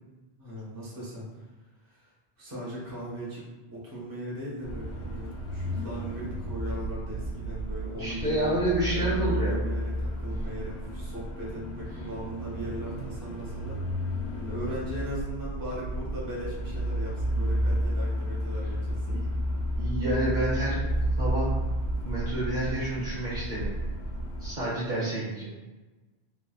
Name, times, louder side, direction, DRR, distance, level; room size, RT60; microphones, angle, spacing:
voice 1, 0.4-1.4 1.8-3.4 3.7-8.6 8.9-13.8 14.4-19.2, equal, 20° right, -6 dB, 0.8 m, -38 dB
sound 1, 4.6-24.5, equal, 80° left, 0.9 m, -31 dB
voice 2, 7.9-9.6 12.8-13.0 17.3-17.5 19.0-19.2 19.8-20.8 21.2-21.5 22.0-23.7 24.4-25.5, right 1 dB, 50° right, -8 dB, 0.9 m, -29 dB
3.1 x 2.6 x 2.3 m, 1.2 s
omnidirectional pair, 1.1 m